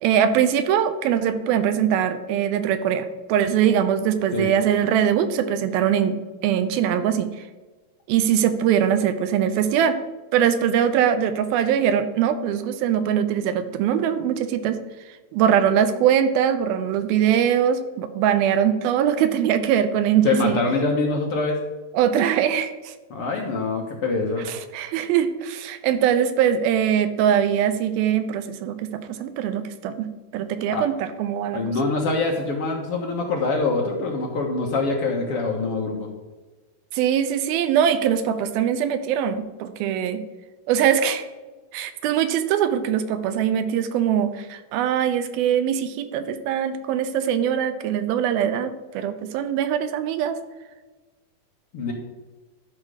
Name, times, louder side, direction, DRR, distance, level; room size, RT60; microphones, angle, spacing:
voice 1, 0.0-7.3 8.1-10.0 10.3-14.8 15.3-20.6 21.9-22.9 24.5-31.8 36.9-40.2 40.7-41.3 41.7-50.4, right 9 dB, 90° right, 11 dB, 2.7 m, -22 dB
voice 2, 20.2-21.6 23.1-24.4 30.7-30.9 31.5-36.1 51.7-51.9, left 3 dB, 60° left, 0 dB, 1.6 m, -24 dB
12.5 x 5.7 x 4.9 m, 1.3 s
omnidirectional pair, 4.2 m